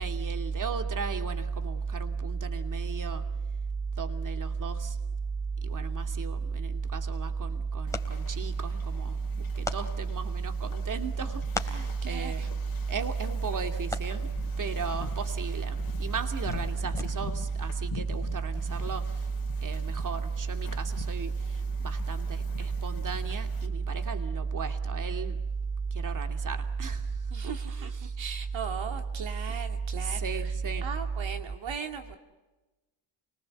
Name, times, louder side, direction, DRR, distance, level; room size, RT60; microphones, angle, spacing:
voice 1, 0.0-3.2 4.0-5.0 5.6-12.4 12.9-14.3 14.6-19.3 19.6-25.4 25.9-27.1 27.4-28.1 30.0-30.9, right 5 dB, 40° right, 6 dB, 2.7 m, -31 dB
sound 1, 6.7-17.5, left 2 dB, 5° left, 3.2 m, -44 dB
Wind / Ocean, 7.9-23.7, left 6 dB, 45° left, 3.9 m, -45 dB
voice 2, 12.0-12.5 27.3-30.5 30.8-32.2, right 7 dB, 65° right, 5 dB, 2.7 m, -39 dB
29.5 x 19.5 x 8.0 m, 1.1 s
cardioid pair, 75°, 49 cm